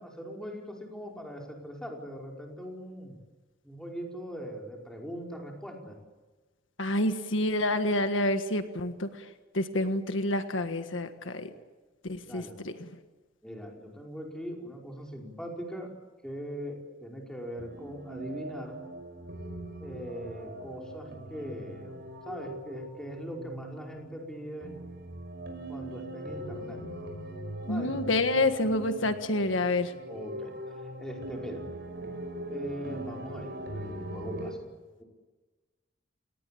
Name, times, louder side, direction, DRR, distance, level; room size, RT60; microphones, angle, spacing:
voice 1, 0.0-3.1 3.6-5.9 12.3-12.6 13.4-15.9 16.2-18.8 19.8-22.0 22.2-24.7 25.7-26.8 27.7-28.0 30.1-30.5 31.0-31.6 32.5-34.6 35.0-35.1, equal, 5° left, 0 dB, 5.1 m, -40 dB
voice 2, 6.8-9.1 9.5-11.5 12.0-12.9 27.7-29.9, left 2 dB, 80° left, 8 dB, 1.7 m, -28 dB
sound 1, 17.6-34.5, right 1 dB, 60° right, 5.4 m, -41 dB
29.0 x 19.0 x 8.6 m, 1.3 s
head